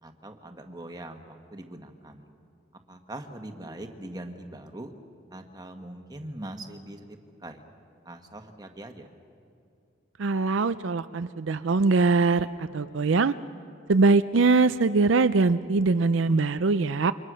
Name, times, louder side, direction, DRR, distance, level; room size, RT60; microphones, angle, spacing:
voice 1, 0.0-2.3 2.9-4.9 5.3-7.2 7.4-7.6 8.0-9.1, right 1 dB, 20° right, 5 dB, 1.5 m, -41 dB
voice 2, 10.2-13.3 13.9-17.1, right 3 dB, 70° right, 12 dB, 0.5 m, -22 dB
29.0 x 24.5 x 6.3 m, 2.6 s
head